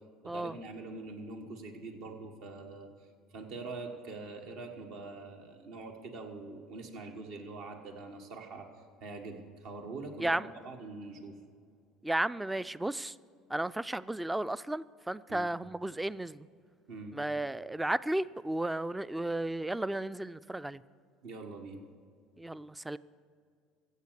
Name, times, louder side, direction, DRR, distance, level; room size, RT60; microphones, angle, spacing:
voice 1, 0.2-3.1 3.3-8.7 9.0-11.4 15.3-15.5 16.9-17.2 21.2-21.8, right 3 dB, 65° right, 4 dB, 1.5 m, -44 dB
voice 2, 12.0-13.1 13.5-16.5 17.1-20.8 22.4-23.0, right 1 dB, 10° right, 18 dB, 0.3 m, -33 dB
14.5 x 8.1 x 6.7 m, 2.2 s
hypercardioid pair, 65°, 0 cm